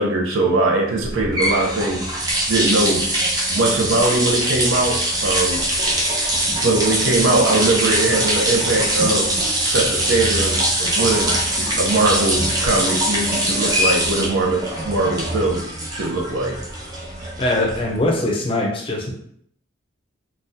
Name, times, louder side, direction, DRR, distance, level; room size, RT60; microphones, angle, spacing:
voice 1, 0.0-2.1 2.5-3.1 3.5-5.7 6.5-9.3 9.6-11.4 11.8-15.7 15.9-16.6, right 2 dB, 75° right, 2 dB, 0.6 m, -21 dB
sound 1, 1.0-18.1, right 1 dB, 20° right, 0.5 m, -22 dB
voice 2, 17.4-19.1, left 1 dB, 25° left, 0 dB, 0.5 m, -21 dB
3.9 x 2.3 x 2.6 m, 0.67 s
head